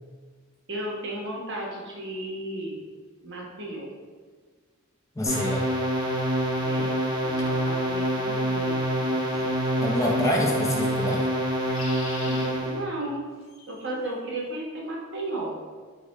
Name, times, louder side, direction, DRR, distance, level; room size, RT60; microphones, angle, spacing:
voice 1, 0.7-2.8 3.2-3.9 6.6-7.0 7.2-9.6 12.2-13.3 13.7-15.5, right 1 dB, 60° right, -3 dB, 1.1 m, -34 dB
voice 2, 5.2-5.6 9.8-11.2, left 1 dB, 15° left, -2 dB, 0.5 m, -26 dB
sound 1, 5.3-12.8, equal, 20° right, 0.8 m, -26 dB
sound 2, 6.8-6.9 9.3-9.7 11.5-12.5 13.4-13.9, left 3 dB, 75° left, 0.7 m, -41 dB
4.8 x 2.2 x 4.7 m, 1.5 s
head